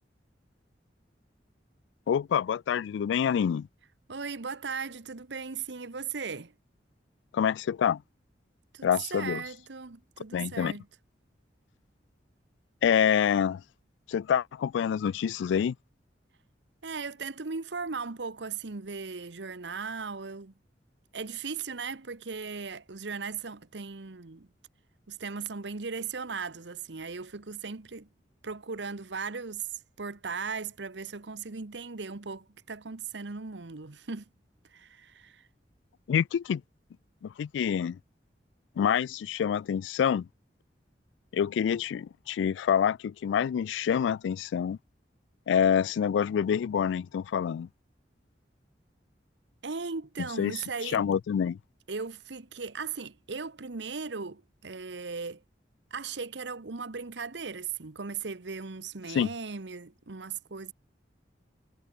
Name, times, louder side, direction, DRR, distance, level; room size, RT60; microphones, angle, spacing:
voice 1, 2.1-3.7 7.3-8.0 8.8-9.4 10.3-10.7 12.8-13.6 14.1-15.7 36.1-36.6 37.2-38.0 38.8-40.3 41.3-44.8 45.5-47.7 50.4-51.6 59.1-59.3, left 8 dB, 80° left, 0.3 m, -27 dB
voice 2, 4.1-6.5 8.7-10.9 16.8-20.5 21.1-24.5 25.1-28.1 28.4-34.2 34.7-35.5 49.6-51.0 51.9-55.4 55.9-60.7, right 5 dB, 75° right, 1.1 m, -37 dB
head